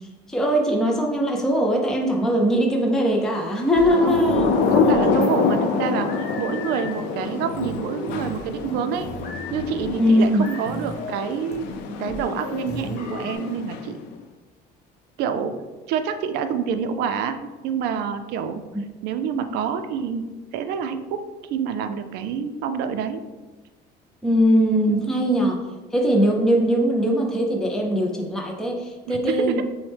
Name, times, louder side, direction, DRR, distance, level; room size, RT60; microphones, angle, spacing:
voice 1, 0.3-4.5 10.0-10.5 24.2-25.6 25.9-29.6, equal, 5° left, 0 dB, 0.3 m, -20 dB
Thunder / Rain, 3.6-14.1, left 5 dB, 90° left, 0.5 m, -26 dB
sound 1, 3.7-13.4, left 1 dB, 70° left, 0.9 m, -36 dB
voice 2, 4.0-6.1 6.4-9.1 9.5-11.7 12.0-14.0 15.2-15.5 15.9-18.6 19.0-20.2 20.5-21.2 21.5-23.2 24.9-25.0 29.1-29.6, right 7 dB, 65° right, 8 dB, 0.4 m, -27 dB
6.0 x 2.1 x 3.2 m, 1.2 s
cardioid pair, 170°, 18 cm